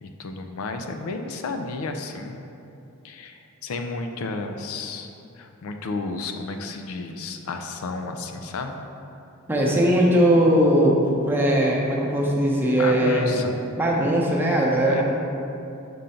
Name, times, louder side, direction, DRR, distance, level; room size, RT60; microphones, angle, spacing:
voice 1, 0.0-2.5 3.0-5.1 5.4-8.8 12.7-13.5 14.9-15.0, left 3 dB, 75° left, 5 dB, 0.4 m, -32 dB
voice 2, 9.5-11.0 11.3-13.5 13.8-15.0, right 1 dB, 10° right, -4 dB, 0.8 m, -20 dB
5.3 x 3.7 x 5.6 m, 2.7 s
head